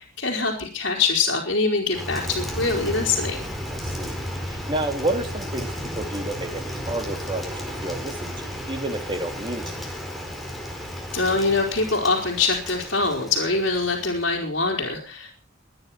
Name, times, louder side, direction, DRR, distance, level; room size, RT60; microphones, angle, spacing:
voice 1, 0.2-3.5 11.1-15.3, left 3 dB, 65° left, -3 dB, 4.2 m, -24 dB
Rain, 1.9-14.4, equal, ahead, 4.6 m, -33 dB
voice 2, 3.7-4.2 4.4-9.6, right 1 dB, 25° right, 6 dB, 2.8 m, -30 dB
24.0 x 9.8 x 5.8 m, 0.38 s
head